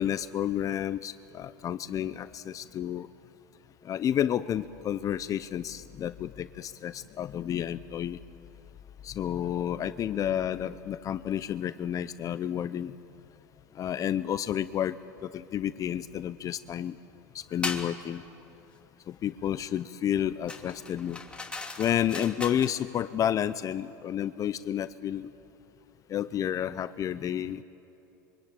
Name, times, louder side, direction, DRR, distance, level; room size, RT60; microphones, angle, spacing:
voice 1, 0.0-3.1 3.9-8.2 9.0-12.9 13.8-15.0 15.2-16.9 17.5-18.2 19.1-21.2 21.8-25.3 26.1-27.6, left 10 dB, 35° left, 14 dB, 0.7 m, -30 dB
sound 1, 17.6-17.9 20.5-22.8, left 3 dB, 10° left, 2.9 m, -37 dB
26.0 x 24.0 x 8.8 m, 2.8 s
hypercardioid pair, 100°, 10 cm